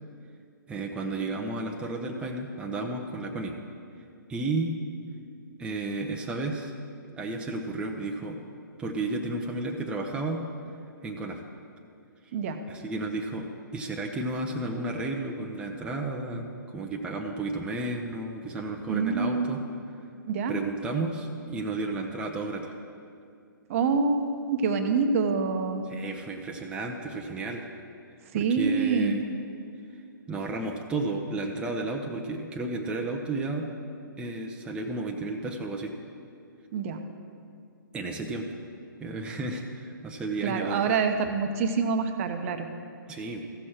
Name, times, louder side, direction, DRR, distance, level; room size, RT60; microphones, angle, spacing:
voice 1, 0.7-3.6 4.3-4.7 5.6-6.7 7.2-8.4 8.8-10.4 11.0-11.4 12.7-19.6 20.5-22.7 25.9-27.7 28.3-29.2 30.3-33.6 34.2-35.9 37.9-38.5 39.0-40.8 43.1-43.4, right 2 dB, 10° right, 1 dB, 0.6 m, -32 dB
voice 2, 18.9-19.7 20.3-20.5 23.7-25.8 28.3-29.2 36.7-37.0 40.4-42.7, right 5 dB, 40° right, 6 dB, 0.8 m, -26 dB
15.0 x 6.3 x 4.4 m, 2.3 s
hypercardioid pair, 135°, 12 cm